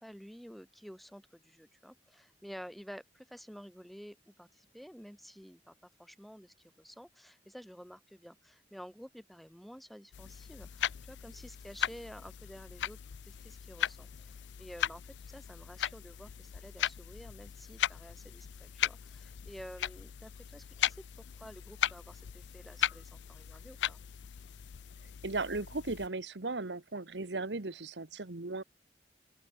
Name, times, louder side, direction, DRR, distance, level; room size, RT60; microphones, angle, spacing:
voice 1, 0.0-21.0 21.4-24.0, equal, ahead, 5.0 m, -51 dB
sound 1, 10.1-26.1, left 10 dB, 80° left, 0.4 m, -38 dB
voice 2, 25.2-28.6, right 3 dB, 80° right, 1.3 m, -36 dB
open air
head